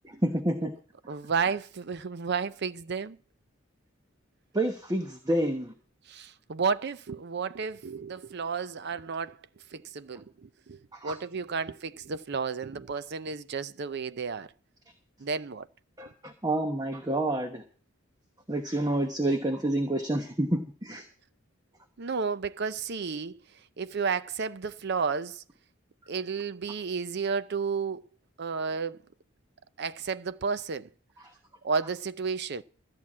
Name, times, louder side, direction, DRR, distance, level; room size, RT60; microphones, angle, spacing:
voice 1, 0.0-0.7 4.5-5.7 10.9-11.2 16.0-17.6 18.5-21.0, right 1 dB, 20° right, 1.0 m, -28 dB
voice 2, 1.1-3.2 6.1-9.3 9.7-14.5 15.2-15.7 22.0-23.3 23.8-25.4 26.1-28.0 28.4-29.0 29.8-30.9 31.6-32.6, right 5 dB, 55° right, 0.6 m, -32 dB
14.0 x 5.8 x 8.5 m
head